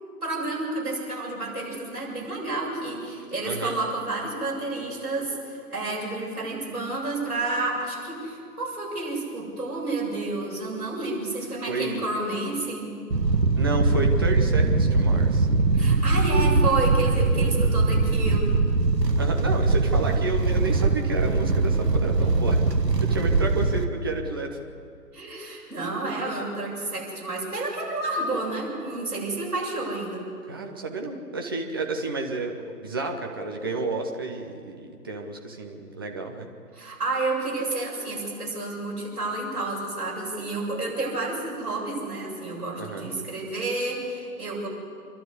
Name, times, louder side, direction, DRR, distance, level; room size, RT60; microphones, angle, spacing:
voice 1, 0.2-12.9 15.7-18.5 25.1-30.2 36.7-44.7, right 2 dB, 65° right, -3 dB, 7.7 m, -30 dB
voice 2, 3.4-3.7 11.7-12.1 13.6-15.5 19.2-22.7 23.0-24.6 30.5-36.5 42.8-43.1, right 3 dB, 15° right, 2 dB, 0.8 m, -31 dB
sound 1, 13.1-23.9, right 3 dB, 85° right, 1.6 m, -22 dB
27.5 x 12.0 x 8.2 m, 2.4 s
figure-of-eight pair, 145°, 48 cm